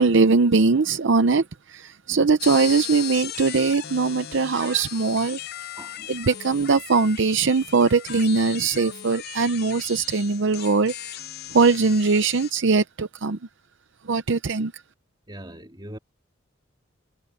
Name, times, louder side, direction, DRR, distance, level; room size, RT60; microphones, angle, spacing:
voice 1, 0.0-5.4 6.1-10.9 11.5-13.4 14.0-14.8, right 4 dB, 60° right, 0.6 m, -21 dB
sound 1, 2.4-12.5, left 11 dB, 50° left, 0.6 m, -37 dB
voice 2, 5.8-6.1 15.3-16.0, right 1 dB, 20° right, 2.7 m, -41 dB
head